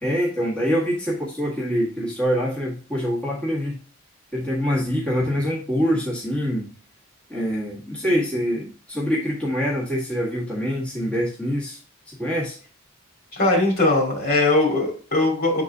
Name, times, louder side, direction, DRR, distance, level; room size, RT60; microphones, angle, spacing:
voice 1, 0.0-3.8 4.3-6.7 7.3-11.8 12.1-12.6, equal, 5° left, 1.6 m, -25 dB
voice 2, 13.3-15.6, left 2 dB, 45° left, 2.4 m, -20 dB
7.5 x 3.9 x 3.5 m
head